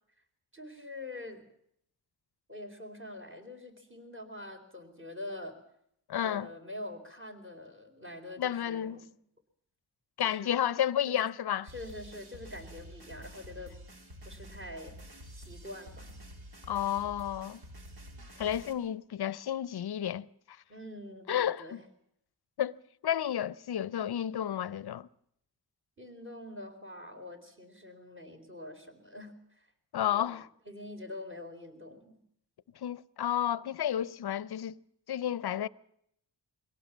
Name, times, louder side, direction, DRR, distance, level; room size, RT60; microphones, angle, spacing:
voice 1, 0.5-1.4 2.5-5.6 6.2-9.1 10.2-10.6 11.1-11.2 11.7-13.7 14.2-16.1 20.7-21.9 26.0-29.7 30.1-30.4 30.7-32.2, left 1 dB, 25° right, 4.1 m, -45 dB
voice 2, 6.1-6.5 8.4-9.0 10.2-11.7 16.7-17.6 18.4-20.6 21.3-21.8 22.6-22.8 23.0-25.1 29.9-30.5 32.8-34.8 35.1-35.7, left 10 dB, 60° left, 0.7 m, -31 dB
sound 1, 11.7-18.7, equal, 60° right, 3.5 m, -49 dB
22.5 x 17.5 x 7.3 m
cardioid pair, 95°, 44 cm